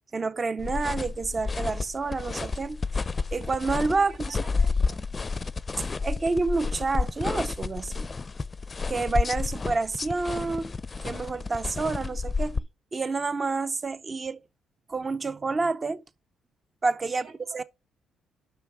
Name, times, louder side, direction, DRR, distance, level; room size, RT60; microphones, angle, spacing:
voice 1, 0.1-2.8 3.3-4.4 5.8-8.1 8.9-10.7 11.0-12.6 12.9-14.4 14.9-16.0 16.8-17.2 17.5-17.6, right 3 dB, 30° right, 0.6 m, -28 dB
sound 1, 0.6-12.6, left 4 dB, 30° left, 0.5 m, -30 dB
voice 2, 4.0-5.2 17.1-17.6, right 5 dB, 55° right, 3.3 m, -51 dB
9.0 x 6.0 x 6.0 m
cardioid pair, 90°, 0 cm